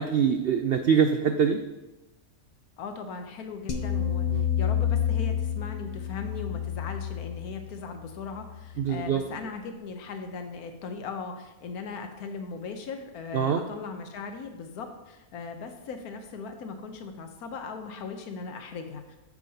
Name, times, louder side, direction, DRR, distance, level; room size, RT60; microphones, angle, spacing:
voice 1, 0.0-1.6 4.3-4.4 8.8-9.2 13.3-13.6, right 7 dB, 80° right, 6 dB, 0.5 m, -24 dB
voice 2, 2.8-19.2, left 4 dB, 85° left, 5 dB, 1.3 m, -38 dB
sound 1, 3.7-8.9, left 9 dB, 45° left, 0.5 m, -29 dB
9.2 x 7.1 x 2.8 m, 1.0 s
omnidirectional pair, 1.5 m